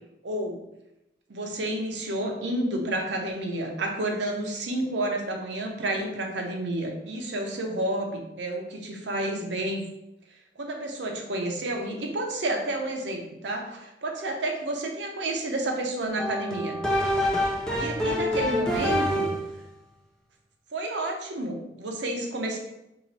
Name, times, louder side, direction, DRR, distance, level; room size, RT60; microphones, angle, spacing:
voice 1, 0.2-0.6 1.3-9.9 10.6-16.8 17.8-19.3 20.7-22.6, right 1 dB, 75° right, 2 dB, 0.7 m, -30 dB
sound 1, 16.2-19.5, equal, 5° left, 0.5 m, -26 dB
2.9 x 2.9 x 4.0 m, 0.89 s
head